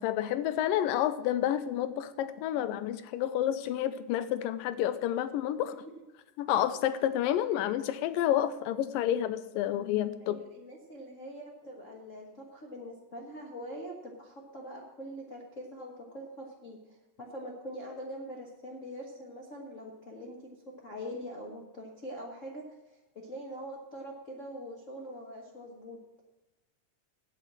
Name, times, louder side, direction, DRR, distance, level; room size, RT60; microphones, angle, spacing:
voice 1, 0.0-5.7 6.4-10.4, left 11 dB, 90° left, 12 dB, 2.4 m, -29 dB
voice 2, 10.2-16.8 17.2-20.4 20.8-22.6 23.1-26.0, equal, 60° left, -2 dB, 0.8 m, -43 dB
9.1 x 7.5 x 7.4 m, 1.1 s
omnidirectional pair, 3.9 m